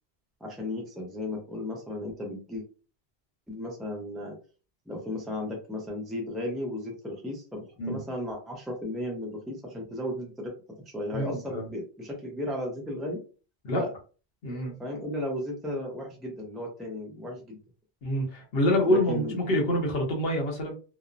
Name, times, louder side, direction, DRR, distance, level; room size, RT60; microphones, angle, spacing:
voice 1, 0.4-2.6 3.5-4.4 4.9-10.5 10.9-13.2 13.8-13.9 14.8-17.6 18.9-19.4, left 1 dB, ahead, -1 dB, 0.5 m, -35 dB
voice 2, 11.1-11.6 13.6-13.8 14.4-14.7 18.0-20.7, equal, 70° left, 1 dB, 1.1 m, -26 dB
2.9 x 2.0 x 2.5 m, 0.36 s
omnidirectional pair, 1.0 m